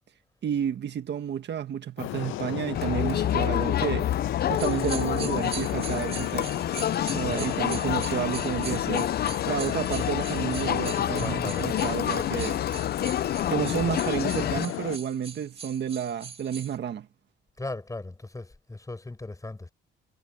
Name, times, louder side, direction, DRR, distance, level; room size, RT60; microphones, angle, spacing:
voice 1, 0.4-4.1 4.5-6.5 7.1-9.1 9.5-12.6 13.5-17.1, right 8 dB, 60° right, 1.8 m, -31 dB
sound 1, 2.0-15.0, left 15 dB, 90° left, 0.8 m, -34 dB
Crowd, 2.7-14.7, left 10 dB, 55° left, 0.6 m, -28 dB
sound 2, 4.6-16.8, right 5 dB, 30° right, 2.3 m, -42 dB
voice 2, 10.9-11.8 17.6-19.7, left 2 dB, 15° left, 5.6 m, -38 dB
cardioid pair, 90°, 20 cm